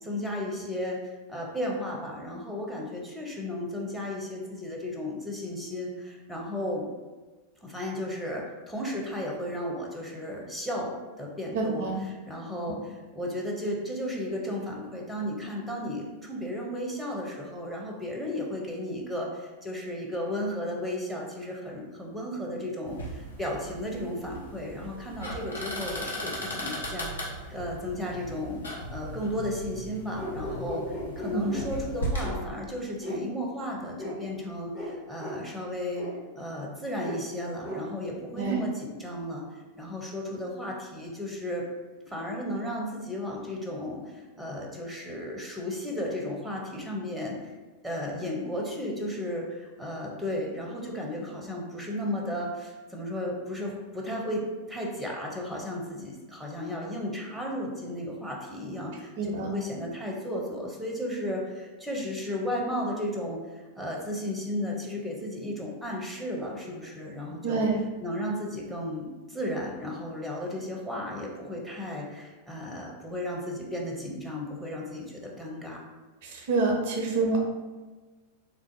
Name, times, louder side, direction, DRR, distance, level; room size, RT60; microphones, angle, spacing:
voice 1, 0.0-6.8 7.6-28.6 28.9-36.1 36.3-41.6 42.0-47.5 47.8-67.6 68.0-75.8, left 1 dB, 5° right, -1 dB, 0.6 m, -34 dB
voice 2, 11.5-12.0 31.3-31.4 38.4-38.5 59.2-59.5 67.4-67.8 76.2-77.4, right 3 dB, 50° right, 1 dB, 0.4 m, -27 dB
sound 1, 22.8-32.3, equal, 75° left, 0.7 m, -37 dB
sound 2, 30.1-31.7 32.2-32.4 33.0-33.2 34.0-34.1 34.7-34.9 35.2-35.4 35.9-36.1 37.0-37.2 37.6-37.8 38.4-38.6, equal, 40° left, 1.0 m, -36 dB
3.3 x 2.4 x 2.6 m, 1.3 s
figure-of-eight pair, 90°, 0 cm